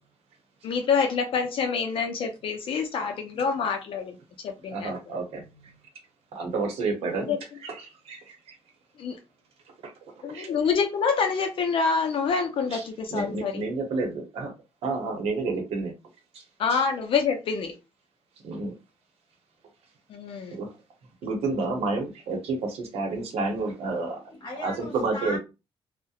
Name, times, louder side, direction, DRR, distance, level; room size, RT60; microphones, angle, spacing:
voice 1, 0.6-4.2 4.4-4.9 7.3-7.4 9.0-9.2 10.2-13.7 16.6-17.7 20.1-20.6, left 5 dB, 60° left, 0.4 m, -26 dB
voice 2, 4.7-5.4 6.3-7.3 7.6-8.5 10.3-10.5 12.7-12.8 13.1-14.5 14.8-15.9 16.3-16.4 16.7-16.8 18.4-18.7 20.5-20.7 21.2-24.2 24.6-25.4, right 3 dB, 90° right, 0.8 m, -30 dB
voice 3, 5.4-5.8 23.9-25.4, left 2 dB, 45° left, 0.9 m, -39 dB
2.3 x 2.1 x 2.7 m
cardioid pair, 115°, 10 cm